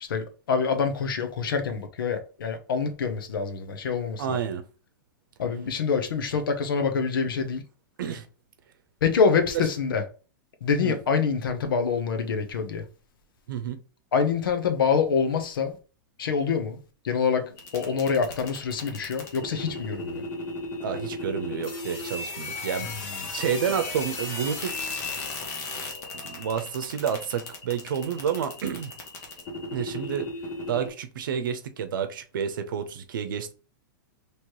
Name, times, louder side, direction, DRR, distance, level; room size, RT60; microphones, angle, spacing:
voice 1, 0.1-4.4 5.4-7.6 9.0-10.0 10.6-12.8 14.1-15.8 16.2-16.8 17.0-20.2 23.0-23.1, left 5 dB, 85° left, 0.9 m, -26 dB
voice 2, 4.2-4.6 8.0-8.3 10.8-11.0 13.5-13.8 20.8-25.0 26.1-28.9 29.7-30.3 30.7-33.5, right 8 dB, 70° right, 0.8 m, -30 dB
sound 1, 17.6-30.9, left 3 dB, 20° left, 0.8 m, -36 dB
3.2 x 3.1 x 4.5 m
supercardioid pair, 175°, 11 cm